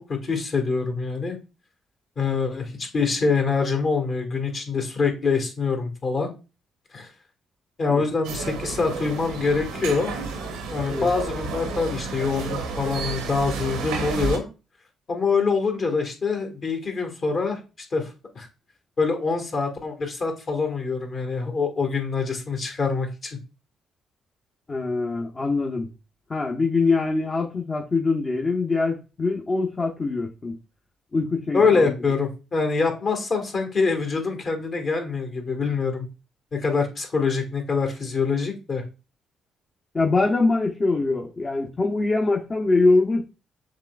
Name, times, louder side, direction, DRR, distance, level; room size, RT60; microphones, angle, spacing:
voice 1, 0.0-1.4 2.2-6.3 6.9-7.1 7.8-10.1 10.7-14.5 15.1-17.6 17.9-18.5 19.0-23.4 31.5-36.1 36.5-38.8, left 4 dB, 50° left, 1.5 m, -25 dB
sound 1, 8.2-14.4, right 4 dB, 85° right, 0.9 m, -31 dB
voice 2, 24.7-25.9 26.3-30.6 31.1-31.9 39.9-43.2, left 3 dB, 35° left, 0.8 m, -23 dB
7.2 x 3.2 x 2.3 m
hypercardioid pair, 50°, 0 cm